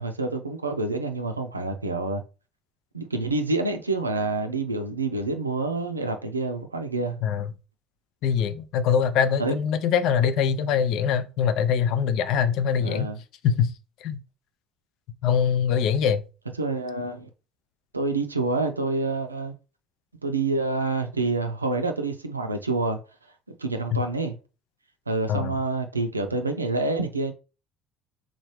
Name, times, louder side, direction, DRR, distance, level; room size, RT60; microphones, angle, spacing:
voice 1, 0.0-2.2 2.9-7.2 9.4-9.6 12.8-13.2 16.6-17.3 17.9-19.5 20.2-23.0 23.6-24.4 25.1-27.3, right 3 dB, 85° right, 0.4 m, -27 dB
voice 2, 8.2-13.1 13.4-13.7 14.0-14.2 15.2-16.2 25.3-25.5, left 7 dB, 55° left, 0.5 m, -23 dB
3.8 x 3.1 x 3.0 m
figure-of-eight pair, 60°, 0 cm